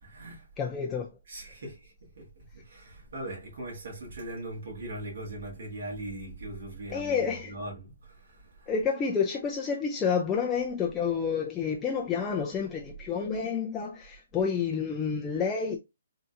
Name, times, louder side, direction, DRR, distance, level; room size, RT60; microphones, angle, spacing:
voice 1, 0.0-0.5 1.0-8.7, right 1 dB, 60° right, 1.7 m, -40 dB
voice 2, 0.6-1.1 6.9-7.5 8.7-15.8, left 6 dB, 10° left, 0.3 m, -29 dB
3.7 x 2.7 x 2.3 m
hypercardioid pair, 170°, 0 cm